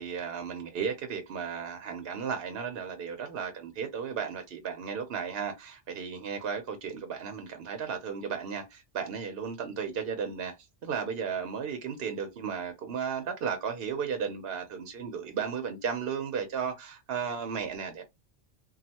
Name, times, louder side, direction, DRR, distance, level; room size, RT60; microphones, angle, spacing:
voice 1, 0.0-10.5 10.8-18.0, right 6 dB, 60° right, 0.8 m, -34 dB
3.1 x 2.3 x 2.8 m
omnidirectional pair, 1.2 m